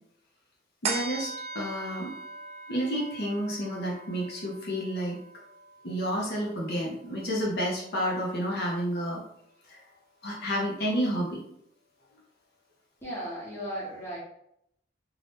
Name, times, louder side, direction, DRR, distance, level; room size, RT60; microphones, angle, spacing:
voice 1, 0.8-2.1 2.7-5.2 5.8-9.2 9.7-9.8 10.2-11.4, equal, 60° left, -3 dB, 0.7 m, -30 dB
sound 1, 0.8-7.6 8.0-8.1, right 4 dB, 35° right, 0.4 m, -40 dB
voice 2, 13.0-14.2, equal, 15° left, -6 dB, 1.0 m, -36 dB
2.6 x 2.3 x 3.4 m, 0.74 s
head